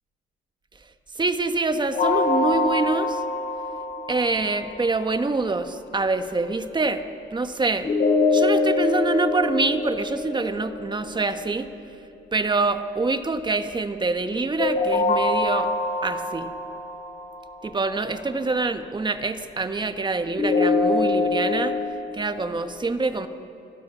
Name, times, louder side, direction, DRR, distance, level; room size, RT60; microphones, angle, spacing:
voice 1, 1.1-3.2 4.1-7.0 7.3-7.9 8.3-11.7 12.3-15.7 16.0-16.5 17.6-21.7 22.1-23.3, right 3 dB, 20° right, 9 dB, 1.3 m, -25 dB
sound 1, 1.9-4.9 7.8-10.9 14.6-17.8 20.4-21.8, left 3 dB, 50° left, 6.8 m, -24 dB
28.0 x 12.5 x 8.4 m, 2.7 s
cardioid pair, 90°, 20 cm